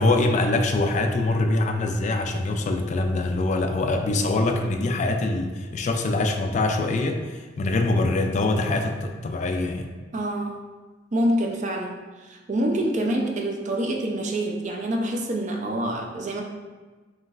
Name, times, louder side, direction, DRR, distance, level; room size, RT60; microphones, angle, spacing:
voice 1, 0.0-9.9, left 2 dB, 40° left, 5 dB, 0.3 m, -24 dB
voice 2, 10.1-10.6 11.1-16.4, right 1 dB, 45° right, 2 dB, 0.5 m, -26 dB
5.2 x 3.0 x 2.4 m, 1.3 s
head